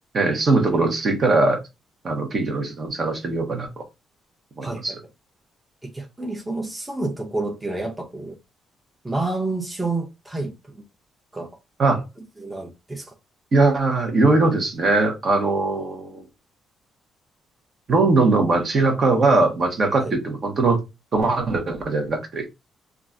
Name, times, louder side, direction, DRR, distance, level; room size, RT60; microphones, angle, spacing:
voice 1, 0.1-1.6 2.0-3.8 4.6-5.0 11.8-12.0 13.5-16.2 17.9-20.8 21.1-22.5, right 3 dB, 45° right, 0.9 m, -20 dB
voice 2, 5.8-8.4 9.0-10.8 11.3-11.5 12.4-13.1 20.0-20.1, right 2 dB, 10° right, 0.6 m, -29 dB
3.0 x 2.4 x 2.5 m
cardioid pair, 90°, 0 cm